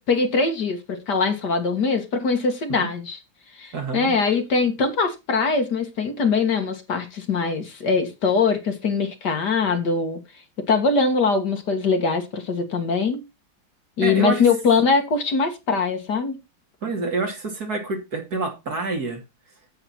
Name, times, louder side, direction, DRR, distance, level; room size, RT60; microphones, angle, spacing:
voice 1, 0.0-3.2 3.6-10.2 10.7-13.2 14.0-16.4, left 4 dB, 60° left, 2.3 m, -22 dB
voice 2, 3.7-4.1 14.0-14.4 16.8-19.2, right 3 dB, 50° right, 3.1 m, -27 dB
8.9 x 8.8 x 4.4 m
omnidirectional pair, 2.1 m